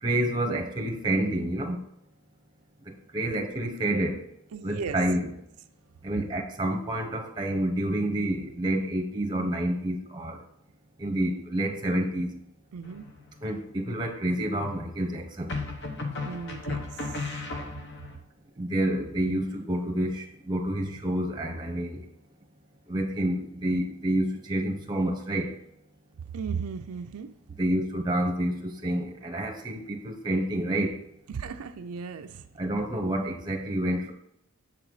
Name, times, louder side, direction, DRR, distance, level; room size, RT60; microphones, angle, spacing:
voice 1, 0.0-1.8 2.9-4.2 4.6-5.3 6.0-10.4 11.0-12.4 13.4-15.6 18.6-22.1 22.9-25.5 27.6-31.0 32.6-34.1, right 1 dB, 20° right, 2 dB, 0.8 m, -28 dB
voice 2, 4.5-5.0 12.7-13.1 16.3-17.2 26.3-27.3 31.3-32.5, right 6 dB, 85° right, 8 dB, 0.4 m, -36 dB
sound 1, 12.8-13.4 15.5-18.2, left 3 dB, 50° left, 0.9 m, -34 dB
7.3 x 3.9 x 4.8 m, 0.75 s
head